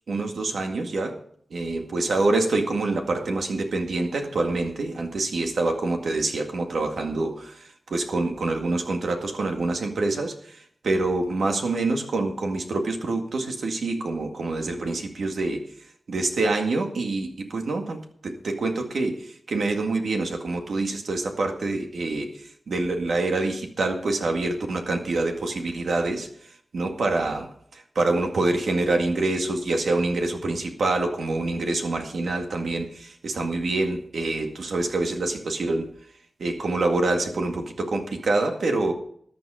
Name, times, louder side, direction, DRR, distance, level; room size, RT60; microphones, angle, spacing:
voice 1, 0.1-1.2 1.5-7.5 7.9-10.3 10.8-15.6 16.1-22.3 22.7-26.3 26.7-35.9 36.4-38.9, right 2 dB, 85° right, 3 dB, 2.0 m, -26 dB
14.0 x 9.6 x 5.0 m, 0.62 s
wide cardioid pair, 90°, 0 cm